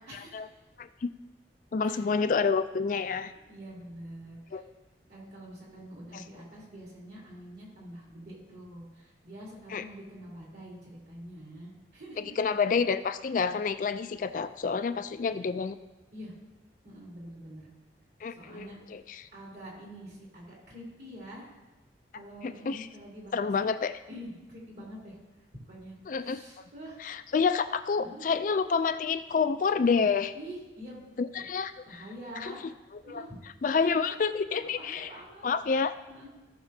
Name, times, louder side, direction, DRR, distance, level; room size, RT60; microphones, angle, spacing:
voice 1, 0.1-0.5 1.8-2.0 3.5-4.6 5.1-12.3 16.1-16.3 16.8-17.7 18.3-18.8 19.3-21.5 22.1-23.5 24.1-25.2 25.7-27.2 28.0-28.2 30.3-31.0 31.4-31.5 31.8-32.6 33.0-33.4 33.7-34.2 34.5-35.5 36.1-36.3, right 1 dB, 55° right, -4 dB, 3.1 m, -46 dB
voice 2, 0.8-1.1 1.7-3.3 4.5-4.6 6.1-6.2 9.7-9.8 12.4-15.8 18.2-19.3 22.4-22.9 23.3-24.0 26.1-26.7 27.0-30.3 31.2-32.0 32.4-32.5 33.1-33.2 33.6-35.1 35.4-35.9, left 5 dB, 45° left, 10 dB, 0.3 m, -28 dB
17.0 x 6.1 x 2.7 m, 1.1 s
head